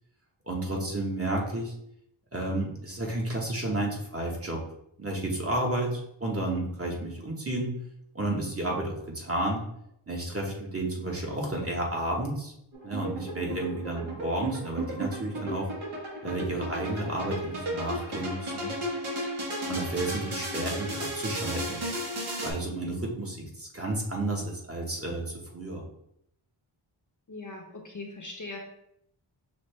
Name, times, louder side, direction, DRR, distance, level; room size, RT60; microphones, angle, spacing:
voice 1, 0.5-1.7 2.3-4.6 5.0-7.7 8.1-9.6 10.1-12.5 12.8-15.7 16.2-18.7 19.7-21.8 22.4-25.8, right 1 dB, 30° right, -1 dB, 1.1 m, -31 dB
sound 1, 12.7-22.5, right 1 dB, 80° right, 1.5 m, -34 dB
voice 2, 27.3-28.6, left 3 dB, 40° left, 0 dB, 0.8 m, -41 dB
6.3 x 2.5 x 3.2 m, 0.75 s
wide cardioid pair, 90°, 50 cm